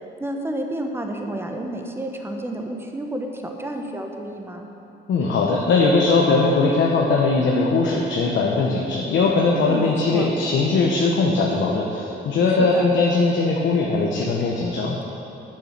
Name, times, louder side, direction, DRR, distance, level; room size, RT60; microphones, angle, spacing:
voice 1, 0.2-4.6 9.5-10.3 12.5-12.9, right 1 dB, 10° right, 3 dB, 1.1 m, -30 dB
voice 2, 5.1-15.0, left 3 dB, 70° left, -1 dB, 1.0 m, -20 dB
8.9 x 6.7 x 5.9 m, 2.9 s
cardioid pair, 90°, 20 cm